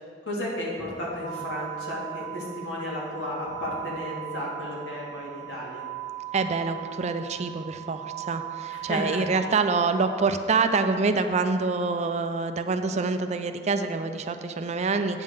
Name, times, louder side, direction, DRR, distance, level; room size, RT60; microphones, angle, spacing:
voice 1, 0.3-5.8 8.7-9.2, left 1 dB, 85° left, -5 dB, 2.1 m, -33 dB
sound 1, 1.2-10.3, right 14 dB, 85° right, 0.8 m, -39 dB
voice 2, 6.3-15.2, right 4 dB, 40° right, 8 dB, 0.4 m, -26 dB
8.8 x 3.7 x 6.5 m, 2.2 s
head